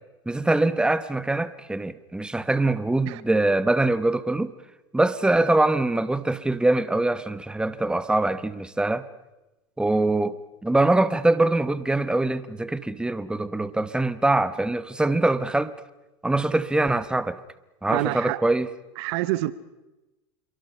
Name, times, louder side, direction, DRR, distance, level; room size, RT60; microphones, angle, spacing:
voice 1, 0.3-4.5 4.9-9.1 9.8-15.7 16.2-17.4 17.8-18.7, right 2 dB, 5° right, 1.2 m, -23 dB
voice 2, 17.9-18.4 19.0-19.5, right 18 dB, 65° right, 1.1 m, -26 dB
27.0 x 23.5 x 5.7 m
hypercardioid pair, 90°, 15 cm